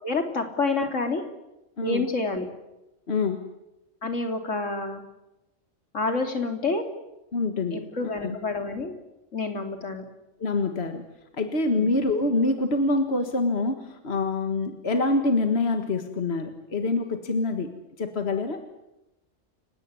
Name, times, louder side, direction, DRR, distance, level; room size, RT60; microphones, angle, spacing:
voice 1, 0.0-1.2 1.8-2.5 4.0-5.0 5.9-6.8 7.7-8.9 9.3-10.0 11.7-11.9, left 3 dB, 80° left, 5 dB, 3.4 m, -28 dB
voice 2, 3.1-3.4 7.3-8.4 10.4-11.0 11.4-17.7 18.0-18.6, left 3 dB, 60° left, 7 dB, 2.0 m, -26 dB
29.5 x 17.5 x 9.8 m, 0.96 s
omnidirectional pair, 1.3 m